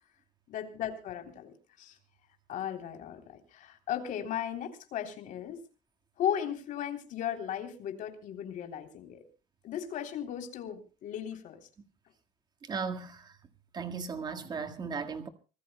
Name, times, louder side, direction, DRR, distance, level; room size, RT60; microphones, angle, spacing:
voice 1, 0.5-2.0 2.5-5.6 6.2-9.2 9.6-11.6, left 9 dB, 55° left, 3.3 m, -36 dB
voice 2, 12.6-13.3 13.7-15.3, right 5 dB, 25° right, 1.7 m, -36 dB
25.5 x 18.5 x 2.2 m
cardioid pair, 175°, 16 cm